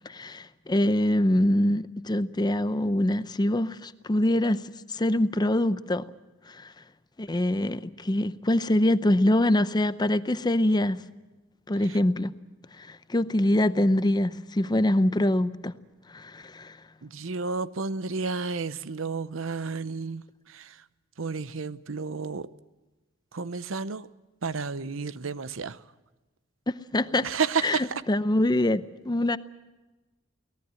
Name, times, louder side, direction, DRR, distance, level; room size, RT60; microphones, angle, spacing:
voice 1, 0.0-4.6 4.9-6.1 6.5-6.7 7.2-11.0 11.7-12.3 12.8-15.7 16.1-16.8 26.9-27.3 27.6-27.8 28.1-29.4, left 1 dB, 20° left, 0.6 m, -24 dB
voice 2, 17.0-20.8 21.2-22.5 23.3-24.1 24.4-25.8 27.2-28.0, right 4 dB, 80° right, 0.8 m, -31 dB
23.5 x 18.5 x 7.6 m
head